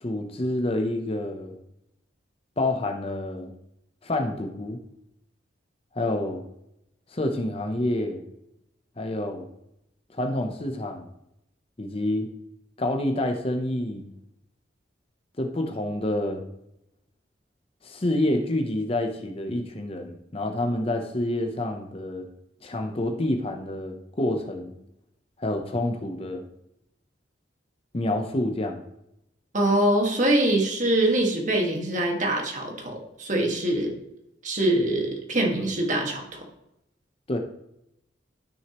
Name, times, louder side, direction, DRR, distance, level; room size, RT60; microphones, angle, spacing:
voice 1, 0.0-1.6 2.6-3.5 4.0-4.8 5.9-6.4 7.1-8.2 9.0-9.5 10.1-11.1 11.8-12.3 12.8-14.1 15.4-16.4 17.8-22.3 22.6-24.7 25.4-26.5 27.9-28.8 37.3-37.4, left 1 dB, 30° left, 4 dB, 0.7 m, -28 dB
voice 2, 29.5-32.9 33.2-33.9 34.4-36.4, right 1 dB, 40° right, 0 dB, 1.7 m, -23 dB
13.0 x 6.3 x 3.0 m, 0.82 s
head